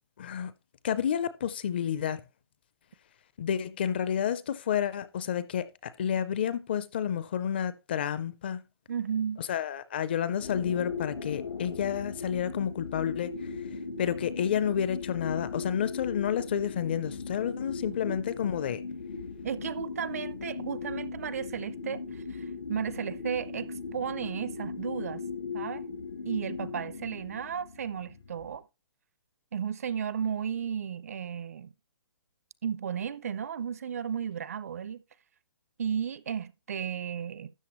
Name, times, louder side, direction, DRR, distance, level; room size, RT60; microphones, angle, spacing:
voice 1, 0.2-0.5 0.8-2.2 3.4-8.6 9.4-13.3 14.0-18.8, left 9 dB, 25° left, 0.4 m, -30 dB
voice 2, 8.9-9.4 18.1-18.2 19.4-25.2 25.5-25.9 26.3-28.6 29.5-31.7 32.6-35.0 35.8-37.5, right 8 dB, 35° right, 0.4 m, -34 dB
sound 1, 10.4-28.6, left 4 dB, 85° left, 1.5 m, -38 dB
13.0 x 8.2 x 3.0 m
hypercardioid pair, 170°, 13 cm